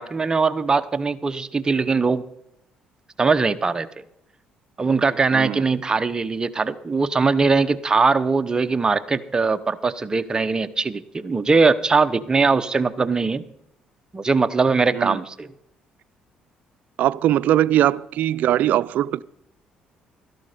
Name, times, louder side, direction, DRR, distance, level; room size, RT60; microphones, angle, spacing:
voice 1, 0.0-2.2 3.2-3.9 4.8-13.4 14.1-15.5, right 4 dB, 25° right, 0.8 m, -21 dB
voice 2, 5.3-5.7 14.9-15.2 17.0-19.2, right 12 dB, 70° right, 0.4 m, -20 dB
13.0 x 12.0 x 5.1 m
supercardioid pair, 75°, 3 cm